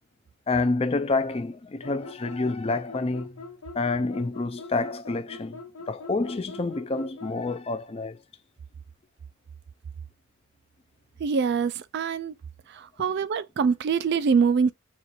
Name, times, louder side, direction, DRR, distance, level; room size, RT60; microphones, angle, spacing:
voice 1, 0.5-3.4 3.7-5.6 5.9-8.2, left 3 dB, 25° left, 0.4 m, -28 dB
sound 1, 1.8-7.7, left 3 dB, 80° left, 0.9 m, -43 dB
voice 2, 11.2-12.3 12.7-14.7, right 6 dB, 50° right, 0.3 m, -24 dB
4.3 x 2.4 x 4.5 m
head